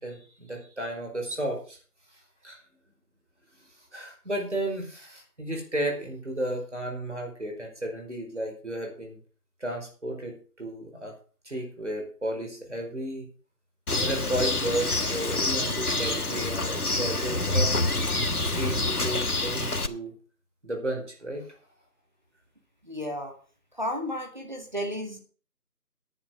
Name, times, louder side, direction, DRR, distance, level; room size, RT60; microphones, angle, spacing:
voice 1, 0.0-1.8 2.1-2.6 3.6-9.2 9.6-11.1 11.4-13.3 13.9-18.0 18.3-20.1 20.6-21.4, right 1 dB, 45° right, 2 dB, 4.9 m, -33 dB
Bird, 13.9-19.9, left 2 dB, 65° left, 1.6 m, -27 dB
voice 2, 22.8-23.3 23.8-25.2, equal, 30° right, 2 dB, 2.0 m, -33 dB
10.5 x 8.9 x 6.3 m, 0.40 s
figure-of-eight pair, 180°, 47 cm